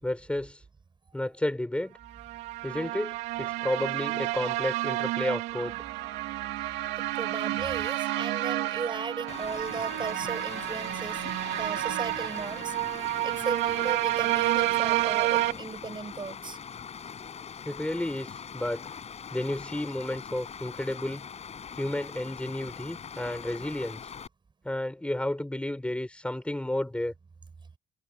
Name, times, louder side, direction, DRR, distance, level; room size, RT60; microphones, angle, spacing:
voice 1, 0.0-0.6 1.1-2.0 2.6-5.7 7.4-7.5 17.6-18.9 19.3-21.2 21.8-24.1 24.6-27.1, left 1 dB, 5° left, 6.7 m, -32 dB
sound 1, 2.1-15.5, right 17 dB, 90° right, 2.4 m, -30 dB
voice 2, 7.2-11.2 11.6-12.7 13.2-16.6, right 4 dB, 25° right, 7.4 m, -36 dB
Stream, 9.3-24.3, left 7 dB, 40° left, 5.8 m, -42 dB
cardioid pair, 110°, 17 cm